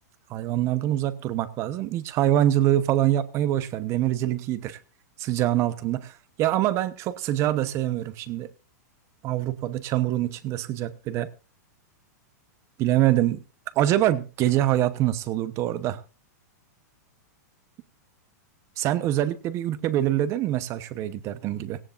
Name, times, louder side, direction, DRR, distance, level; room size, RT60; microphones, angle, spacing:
voice 1, 0.3-4.8 5.2-6.1 6.4-8.5 9.2-11.3 12.8-13.4 13.8-16.0 18.8-21.8, right 13 dB, 30° right, 15 dB, 1.0 m, -24 dB
17.5 x 15.5 x 2.6 m, 0.31 s
supercardioid pair, 150°, 9 cm